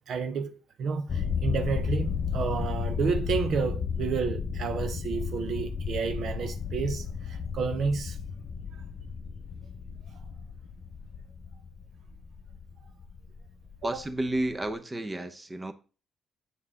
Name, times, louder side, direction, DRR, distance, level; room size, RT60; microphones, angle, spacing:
voice 1, 0.1-8.2 13.8-14.0, right 5 dB, 65° right, 0.6 m, -31 dB
sound 1, 1.1-14.7, left 6 dB, 50° left, 1.0 m, -33 dB
voice 2, 13.8-15.7, right 1 dB, 20° right, 0.7 m, -31 dB
8.4 x 4.6 x 3.7 m
cardioid pair, 90°, 0 cm